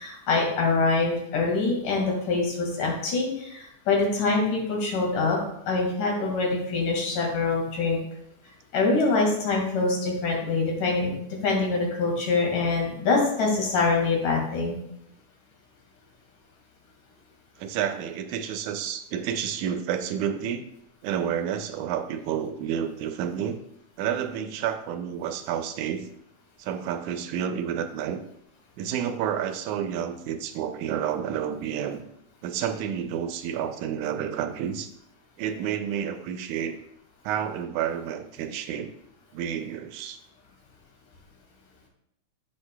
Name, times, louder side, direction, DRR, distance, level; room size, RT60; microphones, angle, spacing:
voice 1, 0.0-5.4 5.7-8.0 8.7-14.8, left 3 dB, 85° left, 0 dB, 3.5 m, -25 dB
voice 2, 17.6-20.6 21.0-23.6 24.0-26.1 26.6-28.2 28.8-32.0 32.4-34.9 35.4-36.8 37.3-38.9 39.3-40.2, right 9 dB, 80° right, 8 dB, 1.9 m, -30 dB
10.0 x 7.9 x 2.2 m, 0.74 s
omnidirectional pair, 3.6 m